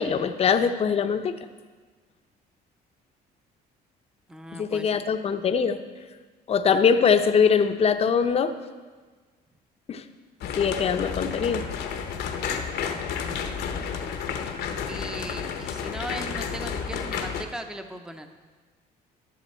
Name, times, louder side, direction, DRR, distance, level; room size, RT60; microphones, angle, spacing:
voice 1, 0.0-1.3 4.5-5.8 6.5-8.5 9.9-10.0 10.4-11.7, left 6 dB, 35° left, 9 dB, 0.6 m, -22 dB
voice 2, 4.3-5.0 13.2-13.6 14.9-18.3, right 1 dB, 5° right, 7 dB, 0.6 m, -38 dB
sound 1, 10.4-17.4, left 7 dB, 75° left, 0.9 m, -31 dB
13.0 x 7.0 x 4.3 m, 1.4 s
cardioid pair, 110°, 17 cm